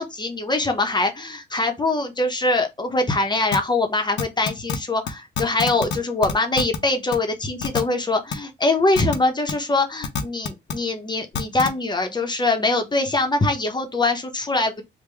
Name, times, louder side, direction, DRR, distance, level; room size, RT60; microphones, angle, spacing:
voice 1, 0.0-14.8, left 2 dB, 20° left, 0.8 m, -23 dB
sound 1, 3.5-3.6 4.2-4.8 5.1-5.2 5.4-6.0 6.2-6.8 7.1-7.2 7.6-7.8 8.3-8.4 8.9-9.2 9.5-9.6 10.0-10.7 11.3-11.7, left 6 dB, 70° left, 0.7 m, -25 dB
3.5 x 2.2 x 3.2 m
cardioid pair, 90°, 20 cm